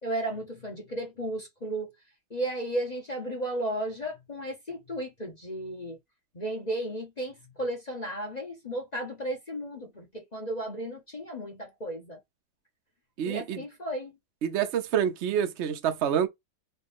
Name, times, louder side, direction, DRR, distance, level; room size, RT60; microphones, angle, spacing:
voice 1, 0.0-1.9 2.3-6.0 6.3-12.2 13.3-14.1, right 1 dB, 30° left, 0.8 m, -34 dB
voice 2, 13.2-13.6 14.4-16.3, right 9 dB, 70° right, 0.6 m, -27 dB
4.2 x 2.5 x 3.5 m
omnidirectional pair, 2.0 m